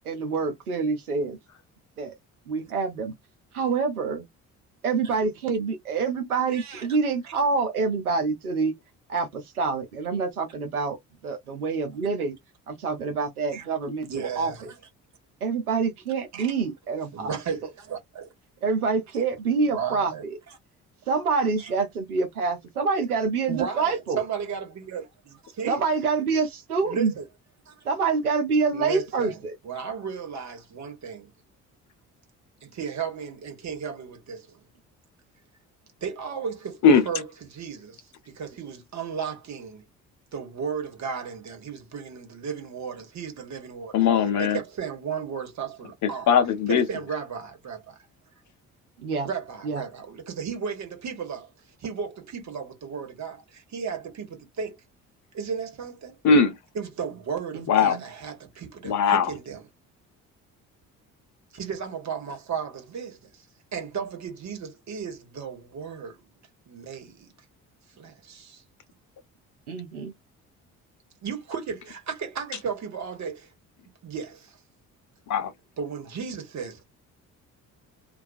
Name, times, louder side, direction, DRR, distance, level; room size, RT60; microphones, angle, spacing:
voice 1, 0.1-1.4 2.0-2.1 2.5-3.1 3.5-4.3 4.8-8.7 9.1-11.0 11.2-12.3 12.7-14.5 15.4-17.3 18.6-20.4 21.1-24.2 25.7-27.1 27.8-29.5 49.0-49.3 49.6-49.8 57.5-58.0 69.7-70.1, right 4 dB, 85° right, 0.7 m, -26 dB
voice 2, 6.5-6.9 13.5-13.6 14.1-14.7 16.3-16.5 17.1-18.3 19.1-19.2 19.6-20.6 21.6-21.7 23.5-25.8 26.8-27.3 27.7-27.9 28.7-29.4 29.6-31.3 32.6-34.6 36.0-39.9 40.3-44.0 44.4-46.3 46.7-48.1 49.2-51.5 51.8-54.8 55.3-56.2 56.7-59.6 61.5-63.5 63.7-66.2 66.7-67.3 68.0-68.6 71.2-73.5 74.0-74.6 75.8-76.8, right 6 dB, 40° right, 1.2 m, -35 dB
voice 3, 43.9-44.6 46.3-46.9 56.2-56.6 57.7-58.0 58.8-59.3 75.3-75.5, left 5 dB, 45° left, 0.7 m, -19 dB
2.3 x 2.3 x 2.5 m
figure-of-eight pair, 45°, 43 cm